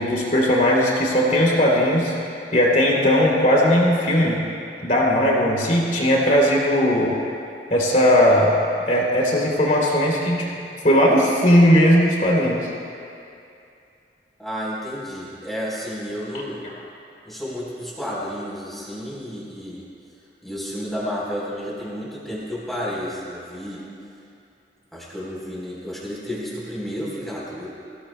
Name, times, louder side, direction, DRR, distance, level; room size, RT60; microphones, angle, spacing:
voice 1, 0.0-2.1 2.5-4.4 4.8-7.2 7.7-8.5 8.9-10.5 10.8-12.6, equal, 45° left, -3 dB, 3.0 m, -18 dB
voice 2, 14.4-16.6 17.3-19.8 20.4-23.8 24.9-27.7, equal, ahead, -6 dB, 3.8 m, -31 dB
24.5 x 16.5 x 2.2 m, 2.6 s
head